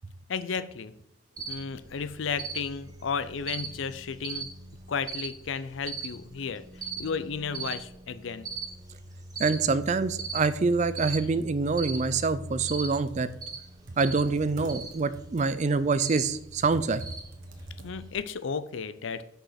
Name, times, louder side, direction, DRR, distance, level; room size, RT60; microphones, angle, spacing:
voice 1, 0.3-0.9 1.5-4.5 4.9-8.5 17.8-19.2, left 5 dB, 70° left, 14 dB, 0.5 m, -33 dB
Cricket, 1.4-18.1, right 4 dB, 20° right, 0.9 m, -40 dB
voice 2, 9.4-13.3 14.0-17.0, right 4 dB, 35° right, 14 dB, 0.4 m, -26 dB
Computer keyboard, 12.9-18.3, right 1 dB, 75° right, 1.3 m, -45 dB
6.3 x 5.5 x 5.7 m, 0.76 s
head